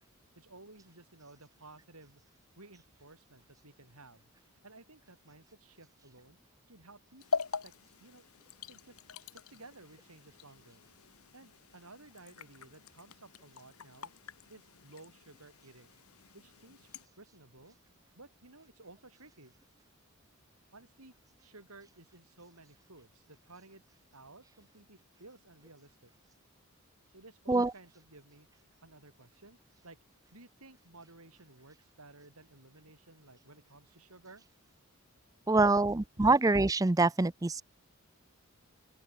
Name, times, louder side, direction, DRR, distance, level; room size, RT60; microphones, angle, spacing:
voice 1, 0.4-2.2 2.6-4.3 4.6-6.4 6.7-7.7 8.0-8.3 8.7-10.8 11.3-14.1 14.5-16.0 16.3-16.9 17.2-17.8 18.2-19.5 20.7-21.1 21.4-23.8 24.1-26.1 27.1-29.6 29.8-30.0 30.3-34.4 35.4-35.5, right 2 dB, 80° right, 8.0 m, -56 dB
sound 1, 7.2-17.1, left 5 dB, 80° left, 1.2 m, -43 dB
voice 2, 35.5-37.6, right 3 dB, 15° right, 0.4 m, -25 dB
open air
head